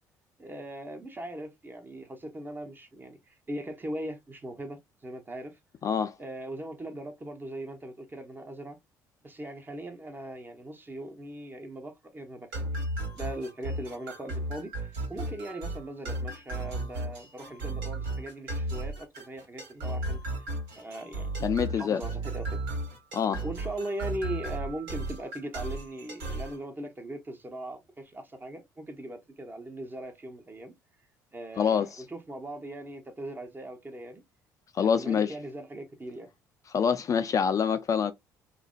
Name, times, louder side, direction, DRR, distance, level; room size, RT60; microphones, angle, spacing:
voice 1, 0.4-5.6 6.2-8.8 9.2-12.5 13.1-20.5 20.8-21.4 21.7-22.6 23.4-30.7 31.3-34.2 34.8-36.3, right 1 dB, 25° right, 0.8 m, -40 dB
voice 2, 5.8-6.1 21.4-22.0 23.1-23.4 31.6-32.0 34.7-35.3 36.7-38.1, left 7 dB, 40° left, 0.3 m, -26 dB
sound 1, 12.5-26.6, right 2 dB, 75° right, 1.5 m, -35 dB
2.5 x 2.1 x 2.3 m
hypercardioid pair, 60°, 9 cm